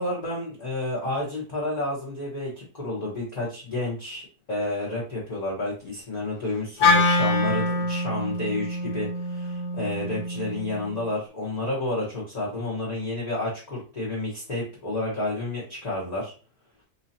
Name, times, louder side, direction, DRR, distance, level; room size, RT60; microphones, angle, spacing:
voice 1, 0.0-16.3, left 2 dB, 30° left, -5 dB, 0.9 m, -30 dB
Wind instrument woodwind instrument, 6.8-11.1, left 2 dB, 90° left, 1.5 m, -25 dB
4.2 x 2.7 x 2.7 m, 0.36 s
omnidirectional pair, 1.7 m